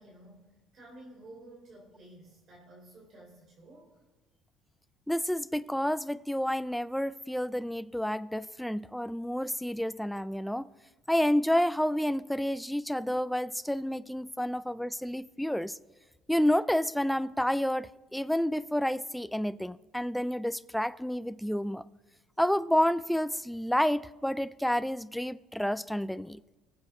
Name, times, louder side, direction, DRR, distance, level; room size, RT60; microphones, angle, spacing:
voice 1, 0.0-4.0, right 1 dB, 50° right, 3.2 m, -52 dB
voice 2, 5.1-10.7 11.1-15.8 16.3-21.8 22.4-26.4, equal, ahead, 0.3 m, -29 dB
19.0 x 7.6 x 3.6 m
cardioid pair, 100°, 0 cm